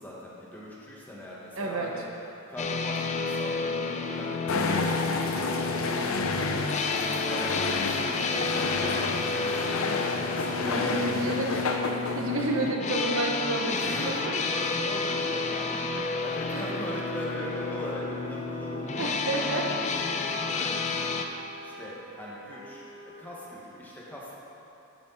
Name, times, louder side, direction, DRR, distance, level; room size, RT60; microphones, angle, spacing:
voice 1, 0.0-2.0 2.5-11.7 13.8-19.1 19.5-21.2 21.6-24.4, left 1 dB, 10° left, -6 dB, 1.5 m, -40 dB
voice 2, 1.6-1.9 10.7-11.6 12.1-14.2 16.0-16.1 16.5-16.7 19.0-19.7, right 2 dB, 70° right, 0 dB, 1.0 m, -30 dB
sound 1, 2.6-21.2, left 4 dB, 35° left, 0.5 m, -31 dB
sound 2, 4.5-12.7, left 3 dB, 75° left, 0.7 m, -30 dB
sound 3, 10.6-23.1, right 2 dB, 25° right, 0.8 m, -47 dB
11.5 x 6.8 x 4.1 m, 3.0 s
head